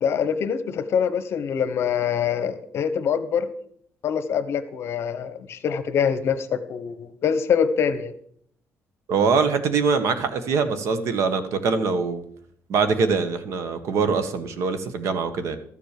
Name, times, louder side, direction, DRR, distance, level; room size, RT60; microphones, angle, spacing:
voice 1, 0.0-3.5 4.0-8.1, left 7 dB, 55° left, 12 dB, 1.1 m, -24 dB
voice 2, 9.1-12.2 12.7-15.6, right 5 dB, 70° right, 10 dB, 1.3 m, -23 dB
13.0 x 7.3 x 6.7 m, 0.66 s
cardioid pair, 150°, 5 cm